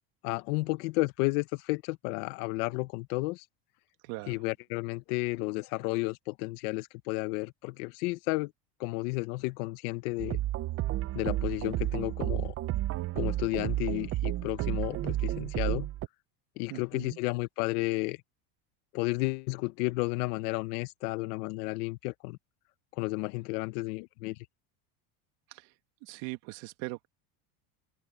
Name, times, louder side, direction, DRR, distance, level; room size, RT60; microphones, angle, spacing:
voice 1, 0.2-3.4 4.3-8.5 8.8-10.4 11.1-12.5 13.1-15.9 16.6-18.2 18.9-22.4 22.9-24.4, left 23 dB, 80° left, 0.9 m, -32 dB
voice 2, 4.0-4.4 16.7-17.2 25.5-25.7 26.0-27.1, right 22 dB, 65° right, 2.2 m, -40 dB
sound 1, 10.2-16.1, right 14 dB, 30° right, 0.6 m, -31 dB
open air
cardioid pair, 140°, 45 cm